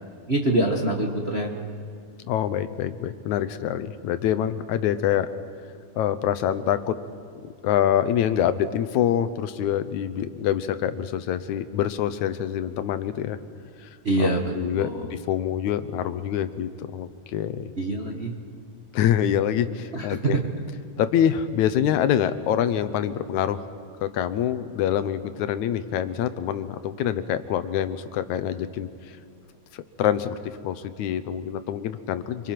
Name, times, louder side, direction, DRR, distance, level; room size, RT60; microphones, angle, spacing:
voice 1, 0.3-1.6 14.0-15.1 17.8-18.3 19.9-20.4, right 2 dB, 35° right, 1 dB, 1.1 m, -25 dB
voice 2, 2.3-5.3 6.0-7.0 7.4-13.4 13.8-13.9 14.2-17.7 18.9-20.4 21.0-23.6 24.0-28.9 29.7-30.3 30.6-32.5, left 10 dB, 75° left, 12 dB, 2.2 m, -25 dB
26.0 x 24.5 x 5.9 m, 2.4 s
omnidirectional pair, 3.4 m